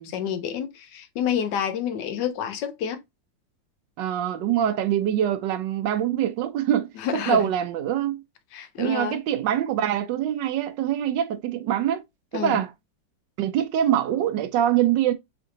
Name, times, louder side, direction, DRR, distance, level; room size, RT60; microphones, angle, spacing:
voice 1, 0.0-3.0 7.0-7.5 8.5-9.2 12.3-12.6, left 8 dB, 75° left, 1.2 m, -29 dB
voice 2, 4.0-8.2 8.8-12.0 12.3-12.7 13.4-15.1, right 10 dB, 75° right, 1.2 m, -24 dB
3.7 x 3.4 x 2.6 m
omnidirectional pair, 2.0 m